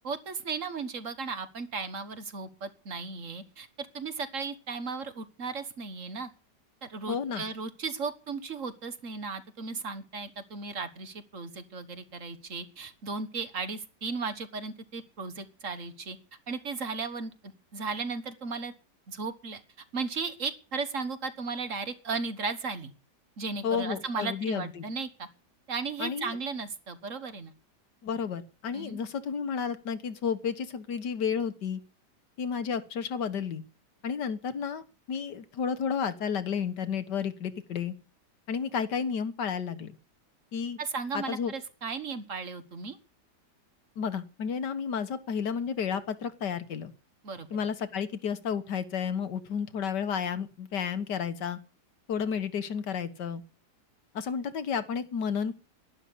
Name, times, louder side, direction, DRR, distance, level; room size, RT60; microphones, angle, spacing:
voice 1, 0.0-3.7 3.9-6.3 6.8-16.2 16.5-17.3 17.7-18.7 19.1-19.6 19.9-22.9 23.4-25.3 25.7-27.5 28.7-29.0 40.8-43.0 47.2-47.5, right 4 dB, 50° right, 11 dB, 1.7 m, -35 dB
voice 2, 7.1-7.4 23.6-24.8 26.0-26.4 28.0-31.8 32.4-33.6 34.0-37.9 38.5-40.0 40.5-40.8 41.1-41.5 44.0-46.9 47.5-51.6 52.1-53.4 54.1-55.5, left 7 dB, 80° left, 12 dB, 2.0 m, -32 dB
12.0 x 11.5 x 8.5 m, 0.37 s
omnidirectional pair, 1.8 m